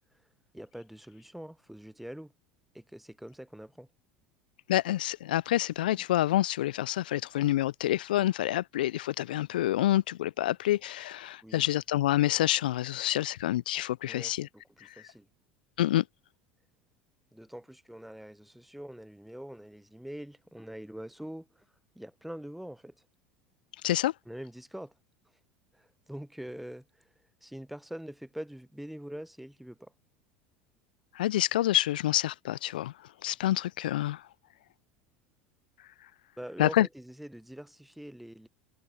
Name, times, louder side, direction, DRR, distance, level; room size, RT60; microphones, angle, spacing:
voice 1, 0.5-2.3 2.7-3.9 11.4-11.7 14.0-14.4 14.8-15.3 17.3-21.6 21.9-22.9 24.3-24.9 25.7-26.8 27.4-29.9 36.4-38.5, equal, ahead, 1.1 m, -44 dB
voice 2, 4.7-14.5 14.8-14.9 15.8-16.0 23.8-24.1 31.1-32.9 33.2-34.2 36.6-36.9, left 14 dB, 75° left, 0.4 m, -27 dB
hypercardioid pair, 75°, 5 cm